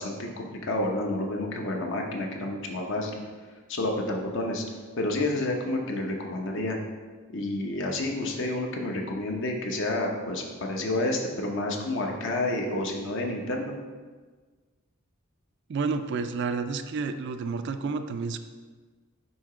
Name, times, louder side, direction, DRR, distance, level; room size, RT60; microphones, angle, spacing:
voice 1, 0.0-3.2 3.7-4.6 5.0-6.8 7.3-13.8, left 2 dB, 60° left, 1 dB, 0.8 m, -29 dB
voice 2, 15.7-18.4, right 4 dB, 55° right, 9 dB, 0.4 m, -30 dB
7.1 x 2.9 x 4.8 m, 1.4 s
head